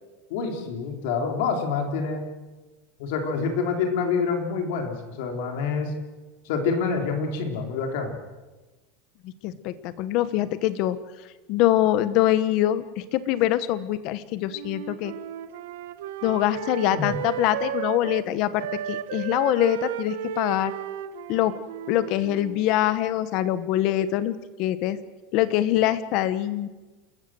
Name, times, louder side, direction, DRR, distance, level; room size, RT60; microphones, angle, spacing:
voice 1, 0.3-2.3 3.0-5.9 6.5-8.2 16.9-17.2, left 5 dB, 60° left, 4 dB, 3.9 m, -27 dB
voice 2, 9.4-11.0 11.5-15.1 16.2-20.7 21.3-21.5 21.9-25.0 25.3-26.7, left 13 dB, 40° left, 14 dB, 1.1 m, -24 dB
Wind instrument woodwind instrument, 14.5-18.3 18.6-22.7, right 10 dB, 80° right, 1.4 m, -34 dB
30.0 x 14.0 x 7.9 m, 1.2 s
supercardioid pair, 175°, 0 cm